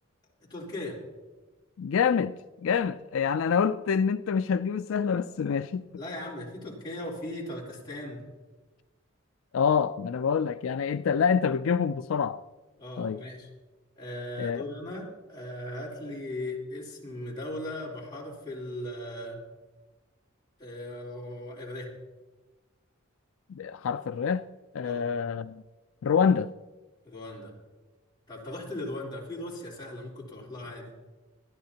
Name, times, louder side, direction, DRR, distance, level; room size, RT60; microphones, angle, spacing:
voice 1, 0.5-1.0 6.0-8.2 12.8-13.5 14.0-19.4 20.6-21.9 24.8-25.1 27.0-27.5 28.3-30.9, left 1 dB, 20° left, 3.6 m, -38 dB
voice 2, 1.8-2.3 2.6-5.8 9.5-12.4 13.0-13.2 14.4-14.6 23.6-24.4 24.7-25.6 26.0-26.5, left 6 dB, 75° left, 0.4 m, -26 dB
26.0 x 10.5 x 2.9 m
head